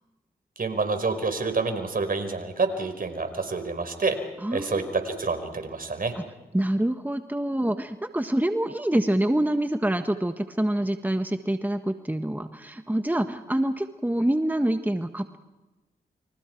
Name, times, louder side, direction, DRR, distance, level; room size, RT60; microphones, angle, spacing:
voice 1, 0.6-4.2 4.5-6.1, right 4 dB, 55° right, 8 dB, 4.9 m, -28 dB
voice 2, 4.4-4.9 6.1-6.3 6.5-15.4, right 1 dB, 10° right, 7 dB, 1.5 m, -26 dB
29.0 x 26.5 x 4.7 m, 1.1 s
supercardioid pair, 45°, 17 cm